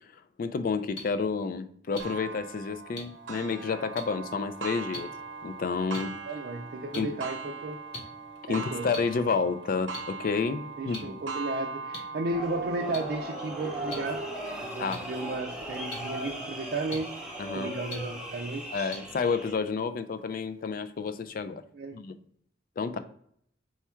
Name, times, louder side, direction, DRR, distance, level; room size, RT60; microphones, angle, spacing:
voice 1, 0.4-5.1 5.4-6.1 7.0-7.1 8.5-11.1 14.8-15.0 17.4-17.7 18.7-21.6 21.9-22.2 22.8-23.0, left 5 dB, 50° left, 12 dB, 0.3 m, -30 dB
sound 1, 0.9-1.0 1.9-2.0 3.0-3.1 3.9-4.0 4.9-5.0 5.9-6.0 6.9-7.0 7.9-8.0 8.9-9.0 9.9-10.0 10.9-11.0 11.9-12.0 12.9-13.0 13.9-14.0 14.9-15.0 15.9-16.0 16.9-17.0 17.9-18.0 18.9-19.0, left 2 dB, 75° left, 1.0 m, -37 dB
Clock, 2.0-17.3 17.9-18.0 18.5-18.6 19.6-19.7, right 4 dB, 85° right, 0.7 m, -41 dB
voice 2, 6.3-7.8 8.5-8.9 10.8-14.3 14.6-19.0 21.7-22.0, right 2 dB, 55° right, 1 dB, 0.4 m, -34 dB
sound 2, 12.3-19.6, right 1 dB, 5° right, 0.8 m, -38 dB
4.3 x 2.4 x 4.3 m, 0.64 s
head